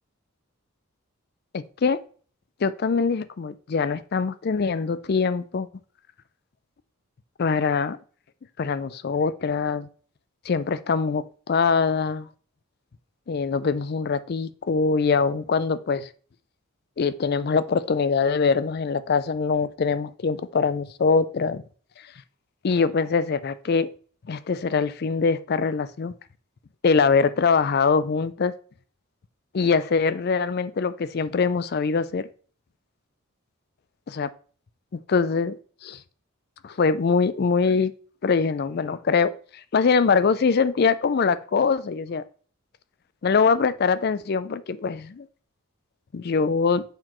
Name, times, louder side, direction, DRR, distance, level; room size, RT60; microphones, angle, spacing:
voice 1, 1.5-2.0 2.6-5.7 7.4-8.0 8.6-9.9 10.5-12.3 13.3-16.1 17.0-21.6 22.6-23.9 24.3-26.1 26.8-28.5 29.5-32.3 34.2-34.3 34.9-35.6 35.8-36.0 36.6-37.9 38.2-39.3 39.7-42.2 43.2-45.3 46.1-46.8, left 5 dB, 45° left, 15 dB, 0.4 m, -23 dB
6.7 x 5.9 x 3.0 m, 0.43 s
head